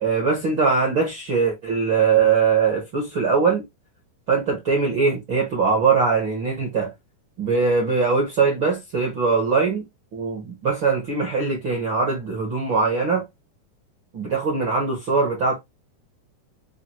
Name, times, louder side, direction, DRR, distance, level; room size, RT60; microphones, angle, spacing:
voice 1, 0.0-3.6 4.3-6.9 7.4-9.8 10.1-13.2 14.1-15.6, right 5 dB, 70° right, 1.1 m, -21 dB
6.0 x 2.4 x 2.9 m
omnidirectional pair, 4.5 m